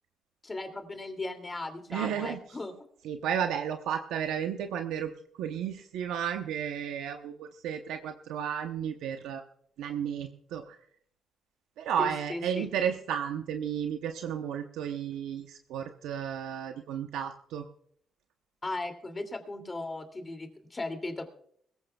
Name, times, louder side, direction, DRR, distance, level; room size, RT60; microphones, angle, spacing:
voice 1, 0.4-2.7 12.0-12.7 18.6-21.3, left 2 dB, 25° left, 6 dB, 2.6 m, -37 dB
voice 2, 1.9-2.4 3.0-5.1 5.4-9.4 9.8-10.8 11.8-17.6, right 8 dB, 90° right, 5 dB, 0.8 m, -33 dB
22.0 x 15.0 x 2.3 m, 0.64 s
cardioid pair, 90°, 0 cm